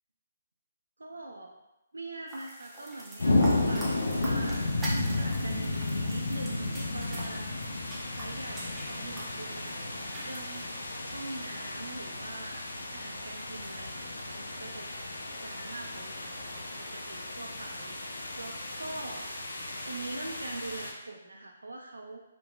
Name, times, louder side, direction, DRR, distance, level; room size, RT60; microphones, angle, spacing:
voice 1, 1.0-1.6 1.9-4.7 5.1-7.5 8.1-12.6 12.9-14.9 15.4-16.5 16.8-18.1 18.4-19.3 19.8-22.2, right 2 dB, 80° right, 2 dB, 0.3 m, -43 dB
sound 1, 2.3-10.8, right 1 dB, 10° right, 0.5 m, -43 dB
sound 2, 3.2-20.9, left 2 dB, 80° left, 0.4 m, -33 dB
3.0 x 2.1 x 2.4 m, 0.93 s
figure-of-eight pair, 140°, 0 cm